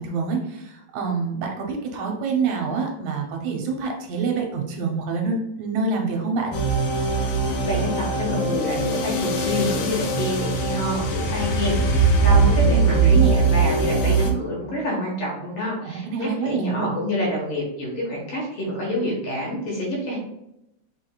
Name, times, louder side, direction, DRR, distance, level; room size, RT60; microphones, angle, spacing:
voice 1, 0.0-6.6 12.3-13.4 15.8-16.9, right 4 dB, 75° right, 2 dB, 2.1 m, -26 dB
sound 1, 6.5-14.3, right 3 dB, 75° left, 1.6 m, -21 dB
voice 2, 7.6-20.2, left 1 dB, 60° left, -3 dB, 2.1 m, -28 dB
5.9 x 3.4 x 2.3 m, 0.84 s
omnidirectional pair, 3.4 m